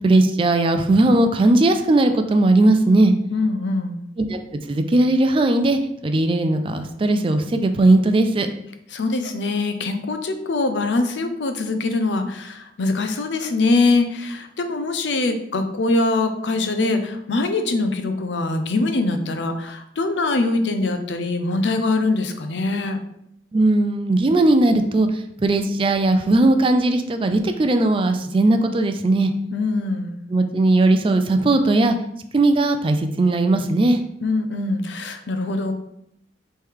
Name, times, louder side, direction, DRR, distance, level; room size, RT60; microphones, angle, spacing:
voice 1, 0.0-3.1 4.2-4.4 4.7-8.5 23.5-25.1 25.4-29.3 30.3-32.0 32.3-34.0, right 2 dB, 30° right, 7 dB, 0.4 m, -18 dB
voice 2, 3.3-4.0 8.9-23.0 29.5-30.2 34.2-35.7, left 3 dB, 80° left, 7 dB, 0.6 m, -23 dB
3.5 x 3.2 x 4.6 m, 0.75 s
head